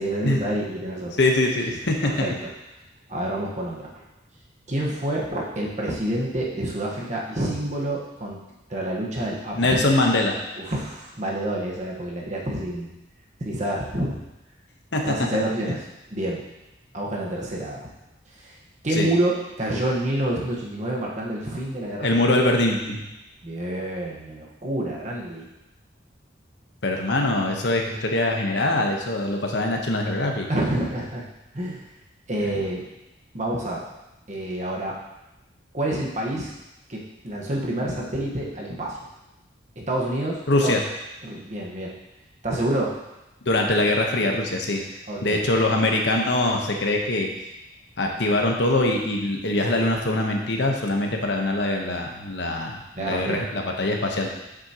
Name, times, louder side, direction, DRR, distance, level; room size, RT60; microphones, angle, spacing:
voice 1, 0.0-1.1 2.0-2.5 3.1-3.9 4.7-8.4 8.7-9.9 10.6-12.9 13.4-14.2 15.0-15.8 16.1-16.4 16.9-17.9 18.4-18.6 18.8-22.1 23.4-25.5 30.5-31.2 31.5-31.8 32.3-32.8 33.3-33.8 34.3-35.0 35.7-36.5 36.9-39.0 39.8-40.7 41.2-41.9 42.4-42.9 45.1-45.4 52.9-53.4, right 1 dB, 40° right, -3 dB, 1.2 m, -28 dB
voice 2, 1.2-2.3 9.5-10.4 14.9-15.1 19.0-19.1 22.0-23.0 26.8-30.5 40.5-40.8 43.5-44.8 45.2-47.3 48.0-54.4, left 2 dB, 65° left, 2 dB, 1.0 m, -23 dB
7.9 x 6.3 x 2.9 m, 0.96 s
head